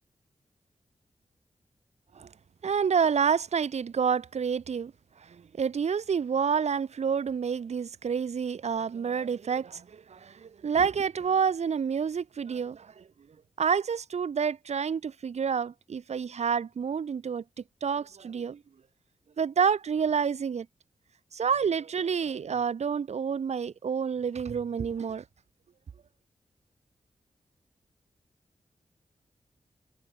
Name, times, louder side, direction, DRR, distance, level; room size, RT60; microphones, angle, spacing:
voice 1, 2.6-4.9 5.2-13.1 13.6-17.4 17.8-18.6 19.4-20.7 21.3-25.2, right 6 dB, 75° right, 3.1 m, -28 dB
wide cardioid pair, 90°, 11 cm